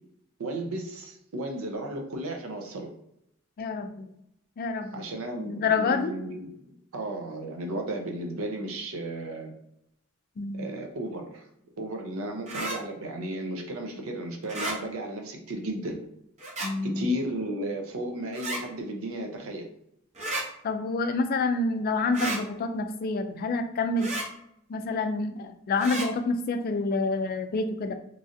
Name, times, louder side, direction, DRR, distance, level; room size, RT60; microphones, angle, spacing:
voice 1, 0.4-2.9 4.9-9.5 10.5-11.4 11.8-16.0 16.8-19.7, right 1 dB, 75° right, 3 dB, 0.6 m, -34 dB
voice 2, 3.6-4.1 4.6-5.1 5.4-6.1 10.4-10.7 16.6-17.2 20.6-24.1 24.7-27.9, left 3 dB, 45° left, 8 dB, 0.3 m, -28 dB
sound 1, 12.5-12.8 14.4-14.8 16.4-16.7 18.3-18.6 20.1-20.4 22.1-22.4 24.0-24.3 25.8-26.1, right 2 dB, 35° right, 0.6 m, -32 dB
3.1 x 2.5 x 2.5 m, 0.76 s
head